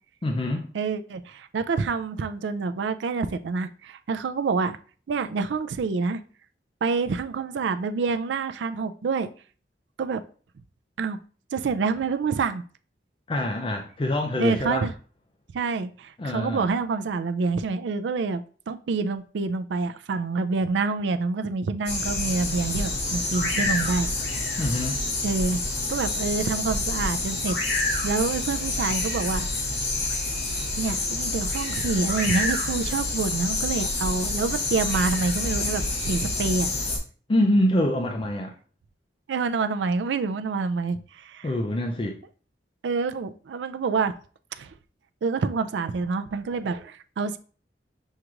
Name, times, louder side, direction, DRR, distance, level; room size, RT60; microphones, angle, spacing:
voice 1, 0.2-0.7 13.3-14.9 16.2-16.7 24.6-25.0 37.3-38.5 41.4-42.2, left 1 dB, 30° left, 2 dB, 0.4 m, -25 dB
voice 2, 0.7-4.8 5.1-6.2 6.8-9.3 10.0-10.2 11.0-11.2 11.5-12.6 14.4-14.9 15.5-24.1 25.2-25.6 25.9-27.6 28.0-29.5 30.1-30.3 30.8-36.7 39.3-41.5 42.8-44.1 44.6-44.7 45.2-47.4, right 4 dB, 75° right, 11 dB, 0.4 m, -27 dB
sound 1, 21.9-37.0, left 2 dB, 70° left, 1.5 m, -28 dB
6.3 x 2.4 x 2.9 m, 0.41 s
head